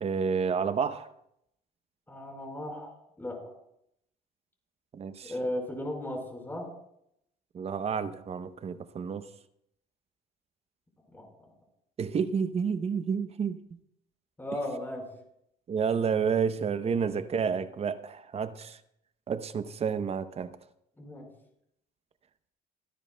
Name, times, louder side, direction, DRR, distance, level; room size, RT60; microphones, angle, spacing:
voice 1, 0.0-1.1 4.9-5.3 7.5-9.3 12.0-13.6 15.7-18.8 19.3-20.5, right 6 dB, 35° right, 13 dB, 0.7 m, -30 dB
voice 2, 2.1-2.9 3.2-3.5 5.3-6.7 11.1-11.3 14.4-15.0 16.8-17.1 21.0-21.3, left 1 dB, 10° left, 0 dB, 4.6 m, -36 dB
25.0 x 10.5 x 2.2 m, 0.77 s
cardioid pair, 110°, 17 cm